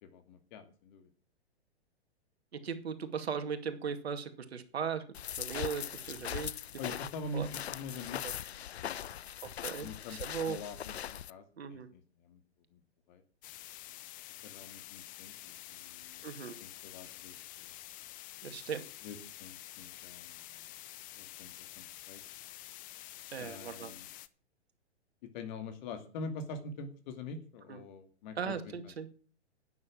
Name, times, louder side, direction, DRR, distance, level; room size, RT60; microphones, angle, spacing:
voice 1, 0.0-1.1 6.8-9.2 9.8-10.2 10.5-12.4 12.7-12.8 13.1-13.2 14.4-16.3 16.6-17.7 19.0-20.6 21.1-22.2 23.4-24.1 25.2-28.9, left 3 dB, 45° left, 7 dB, 2.4 m, -45 dB
voice 2, 2.5-5.0 5.4-6.5 7.3-7.5 8.2-8.3 9.4-10.6 11.6-11.9 16.2-16.6 18.4-18.9 23.3-23.9 27.7-27.8 28.4-29.1, right 6 dB, 65° right, 8 dB, 2.4 m, -38 dB
sound 1, 5.1-11.3, left 10 dB, 70° left, 0.6 m, -40 dB
sound 2, 13.4-24.3, left 16 dB, 25° left, 0.8 m, -49 dB
12.0 x 9.6 x 7.4 m, 0.42 s
figure-of-eight pair, 110°, 33 cm